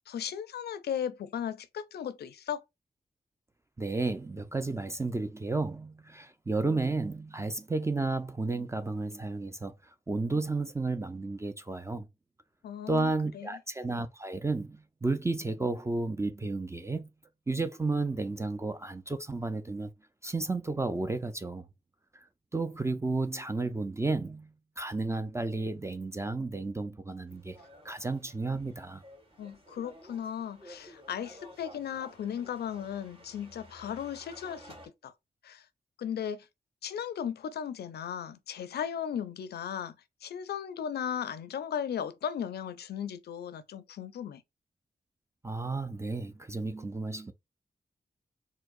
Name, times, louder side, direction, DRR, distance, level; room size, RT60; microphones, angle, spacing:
voice 1, 0.1-2.6 12.6-13.6 29.4-34.7 35.0-35.1 35.4-35.7 36.0-36.5 36.8-40.0 40.2-44.4, left 8 dB, 80° left, 0.4 m, -36 dB
voice 2, 3.8-12.1 12.9-17.1 17.5-19.9 20.2-21.7 22.1-22.2 22.5-24.5 24.8-27.6 27.8-29.0 45.4-47.3, right 3 dB, 15° right, 0.4 m, -32 dB
sound 1, 27.3-34.9, equal, 40° right, 2.0 m, -53 dB
4.5 x 2.0 x 2.5 m
cardioid pair, 55°, 16 cm